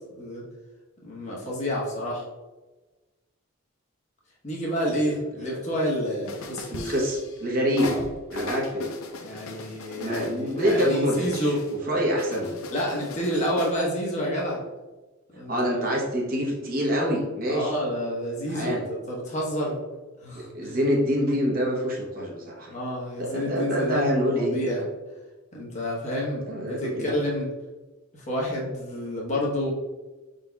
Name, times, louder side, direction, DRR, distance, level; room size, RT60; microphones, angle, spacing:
voice 1, 1.0-2.2 4.4-6.7 7.8-8.0 9.2-11.6 12.0-12.1 12.7-14.6 15.3-15.8 17.5-19.8 20.2-20.8 22.7-24.8 25.5-27.5 28.1-29.7, equal, 35° left, -3 dB, 1.0 m, -29 dB
sound 1, 6.3-7.4 7.8-11.7 12.2-13.8, left 3 dB, 75° left, 0.6 m, -39 dB
voice 2, 6.7-7.9 8.3-8.9 9.9-12.6 15.5-17.7 18.4-18.9 20.3-22.7 23.2-24.6 26.5-27.1, equal, 40° right, -2 dB, 0.9 m, -26 dB
5.1 x 4.0 x 2.3 m, 1.2 s
head